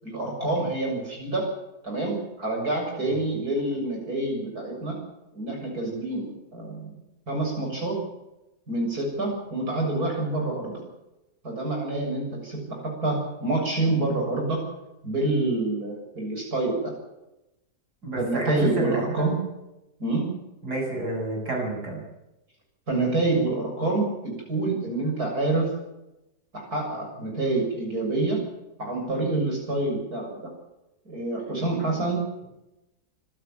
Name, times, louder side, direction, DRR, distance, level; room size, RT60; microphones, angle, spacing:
voice 1, 0.0-1.5 1.8-5.0 5.3-7.0 7.3-8.0 8.7-10.8 11.4-14.6 15.0-17.0 18.2-19.4 20.0-20.3 22.9-25.7 26.5-28.4 28.8-30.5 31.1-32.4, right 2 dB, 70° right, 1 dB, 7.7 m, -27 dB
voice 2, 18.0-19.3 20.6-22.0, right 2 dB, 85° right, 0 dB, 8.1 m, -29 dB
26.0 x 13.0 x 9.0 m, 0.93 s
omnidirectional pair, 1.7 m